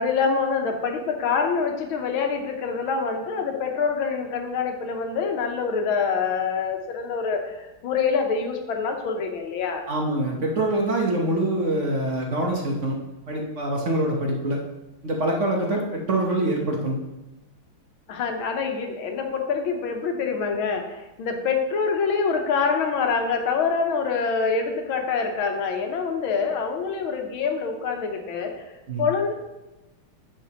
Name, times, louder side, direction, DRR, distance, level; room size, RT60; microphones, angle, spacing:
voice 1, 0.0-9.8 18.1-28.7 29.0-29.3, left 5 dB, 75° left, 3 dB, 1.7 m, -25 dB
voice 2, 9.9-13.0 13.3-14.6 15.0-17.0 28.9-29.0, right 1 dB, 45° right, 0 dB, 1.0 m, -25 dB
10.0 x 6.3 x 2.9 m, 1.0 s
omnidirectional pair, 2.3 m